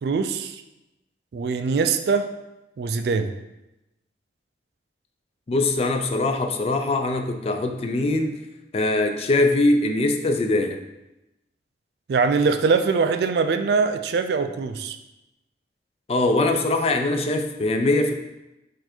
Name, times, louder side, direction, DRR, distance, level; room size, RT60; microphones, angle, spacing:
voice 1, 0.0-0.6 1.3-2.3 2.8-3.3 12.1-15.0, right 5 dB, 65° right, 9 dB, 0.3 m, -22 dB
voice 2, 5.5-8.4 8.7-10.8 16.1-18.1, left 2 dB, 35° left, 6 dB, 0.3 m, -22 dB
4.3 x 2.6 x 4.3 m, 0.95 s
head